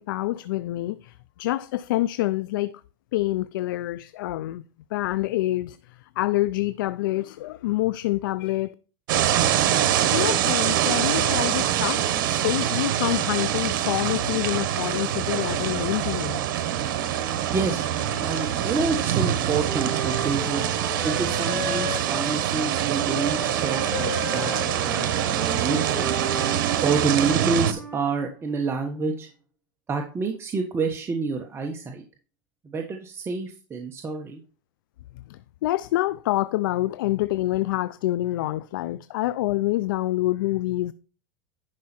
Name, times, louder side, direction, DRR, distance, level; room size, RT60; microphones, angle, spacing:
voice 1, 0.0-2.8 3.1-4.6 4.9-8.7 10.1-12.2 12.4-16.4 35.3-40.9, left 16 dB, 85° left, 0.4 m, -27 dB
sound 1, 9.1-27.7, right 11 dB, 75° right, 1.2 m, -24 dB
Wind instrument woodwind instrument, 17.4-22.4 23.1-28.1, equal, 10° left, 3.7 m, -36 dB
voice 2, 17.5-17.9 18.2-24.5 24.8-26.1 26.8-29.3 29.9-32.0 32.6-34.4, right 4 dB, 20° right, 1.2 m, -28 dB
11.0 x 5.7 x 4.3 m
supercardioid pair, 120°, 11 cm